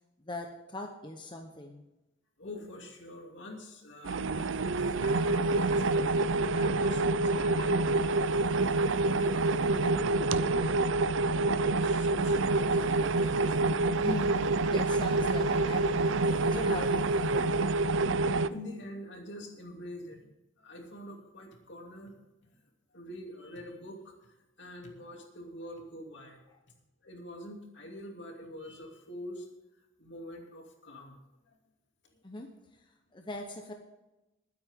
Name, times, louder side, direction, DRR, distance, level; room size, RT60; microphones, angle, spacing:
voice 1, 0.2-1.9 14.0-14.4 14.6-16.2 16.5-17.5 32.2-32.5 33.1-33.7, left 1 dB, 25° left, 3 dB, 1.0 m, -40 dB
voice 2, 2.4-8.4 9.2-13.6 18.3-20.3 20.6-22.2 22.9-26.4 27.0-29.5 30.0-31.2 31.5-31.6, left 1 dB, 65° left, 1 dB, 2.8 m, -45 dB
sound 1, 4.0-18.5, right 3 dB, 75° right, 0.5 m, -27 dB
21.0 x 9.7 x 3.7 m, 1.0 s
head